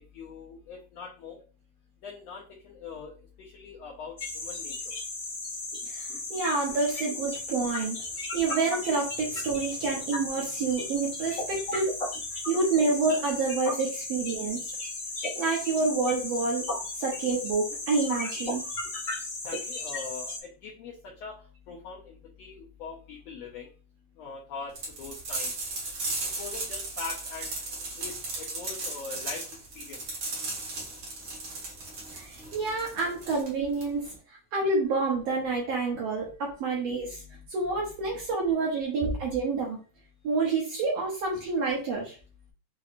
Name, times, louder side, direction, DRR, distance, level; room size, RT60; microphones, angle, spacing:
voice 1, 0.1-1.4 2.0-3.1 3.4-4.7 19.4-20.3 20.6-21.4 21.7-23.7 24.2-25.5 26.3-27.6 28.0-29.4 29.7-30.0 37.0-38.2, left 5 dB, 80° left, -2 dB, 1.5 m, -42 dB
sound 1, 4.2-20.4, left 2 dB, 35° left, 1.4 m, -35 dB
voice 2, 5.8-8.0 8.3-11.9 12.5-14.7 15.3-16.7 17.0-18.7 32.1-34.1 34.5-37.2 37.5-39.8 40.2-42.2, right 3 dB, 70° right, -2 dB, 1.6 m, -28 dB
sound 2, 24.8-34.1, right 2 dB, 50° right, 1.8 m, -36 dB
6.0 x 3.0 x 2.5 m, 0.36 s
omnidirectional pair, 3.8 m